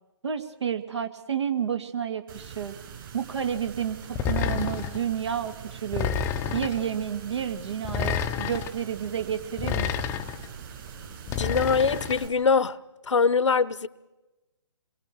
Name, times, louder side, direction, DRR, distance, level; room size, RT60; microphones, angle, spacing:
voice 1, 0.2-2.7 3.1-6.1 6.5-10.1, right 8 dB, 65° right, 2.2 m, -30 dB
sound 1, 2.3-12.3, right 8 dB, 45° right, 7.8 m, -43 dB
sound 2, 4.2-5.0 5.9-6.8 7.8-8.7 9.6-10.5 11.3-12.2, left 8 dB, 15° left, 0.8 m, -29 dB
voice 2, 11.4-12.8 13.0-13.9, left 5 dB, 70° left, 1.0 m, -23 dB
28.0 x 22.0 x 4.6 m
figure-of-eight pair, 135°, 16 cm